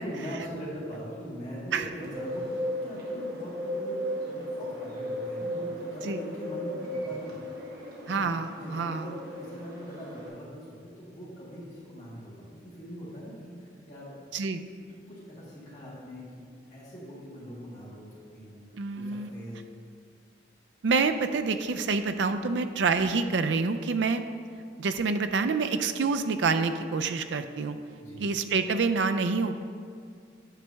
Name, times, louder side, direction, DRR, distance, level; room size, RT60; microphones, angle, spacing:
voice 1, 0.0-7.4 8.1-8.3 8.6-14.3 14.9-16.4 16.7-18.6 18.9-19.6 28.0-28.2, equal, 40° left, -8 dB, 1.7 m, -41 dB
Bird, 2.0-10.3, equal, 55° right, 1.5 m, -36 dB
voice 2, 8.1-9.1 14.3-14.6 18.7-19.3 20.8-24.2 24.8-27.8 28.2-29.6, right 4 dB, 80° right, 9 dB, 0.4 m, -27 dB
9.1 x 3.4 x 6.4 m, 2.2 s
head